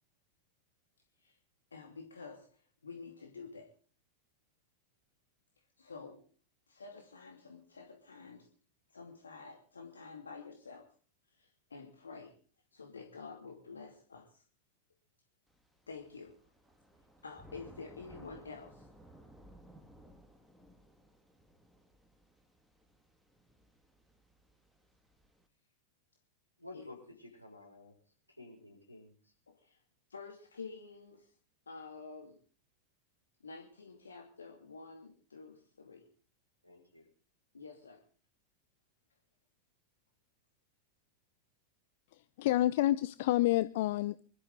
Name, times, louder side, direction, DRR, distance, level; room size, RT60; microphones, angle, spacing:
voice 1, 1.7-3.7 5.8-6.2 6.7-8.5 8.9-10.9 11.3-12.3 12.7-14.4 15.9-16.4 17.2-18.9 29.5-29.8 30.1-31.3 31.7-32.4 33.4-36.1 37.5-38.0, left 4 dB, 75° left, 3 dB, 2.6 m, -49 dB
Thunder / Rain, 15.5-25.4, right 1 dB, ahead, 2.2 m, -59 dB
voice 2, 26.6-29.3 36.6-37.1, left 2 dB, 90° left, 0 dB, 6.1 m, -53 dB
voice 3, 42.4-44.3, left 15 dB, 50° left, 15 dB, 0.7 m, -28 dB
25.0 x 13.0 x 3.9 m, 0.41 s
figure-of-eight pair, 90°, 0 cm